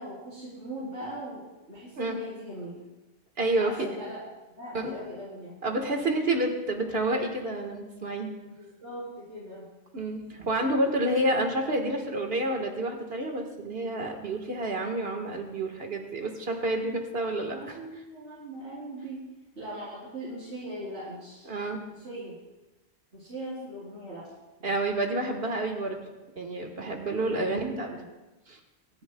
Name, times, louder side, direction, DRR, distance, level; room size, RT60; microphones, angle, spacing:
voice 1, 0.0-1.4 1.7-2.8 3.6-4.2 4.6-5.6 8.5-9.7 17.5-19.2 19.6-21.5 21.9-22.3 23.1-24.3 24.6-24.7 27.3-28.0, right 1 dB, 85° right, -11 dB, 3.8 m, -40 dB
voice 2, 3.4-3.9 4.7-4.9 5.6-8.4 9.9-17.8 21.5-21.8 24.6-26.0 26.4-27.9 28.5-28.6, right 1 dB, 65° right, 3 dB, 1.7 m, -29 dB
24.5 x 10.5 x 2.2 m, 1.1 s
omnidirectional pair, 1.1 m